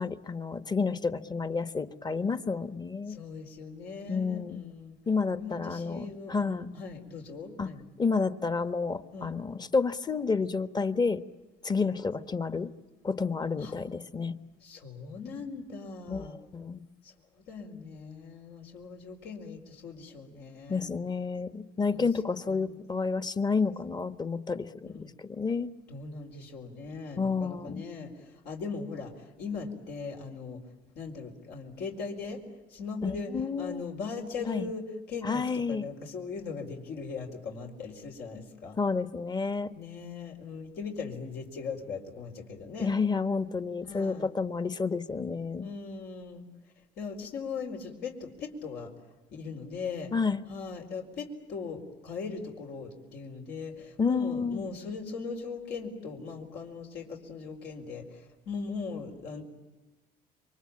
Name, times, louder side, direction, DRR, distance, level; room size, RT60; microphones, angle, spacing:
voice 1, 0.0-3.2 4.1-4.6 5.1-6.7 7.6-7.7 8.0-11.2 11.6-12.7 13.0-14.4 16.1-16.8 20.7-25.7 27.2-27.9 33.0-33.8 34.4-34.7 35.2-35.9 38.8-39.7 42.8-45.7 50.1-50.4 54.0-54.6, left 4 dB, 25° left, 13 dB, 1.3 m, -30 dB
voice 2, 3.1-5.0 5.4-7.9 9.1-9.3 13.6-13.7 14.6-16.4 17.0-20.9 21.9-22.1 22.4-22.7 24.8-25.1 25.9-30.6 30.9-32.4 32.7-33.3 33.6-38.8 39.7-42.9 43.9-44.3 45.6-46.4 47.0-48.9 49.3-50.1 50.5-59.4, left 4 dB, 75° left, 1 dB, 4.8 m, -39 dB
28.0 x 24.0 x 8.7 m, 1.1 s
cardioid pair, 110°, 17 cm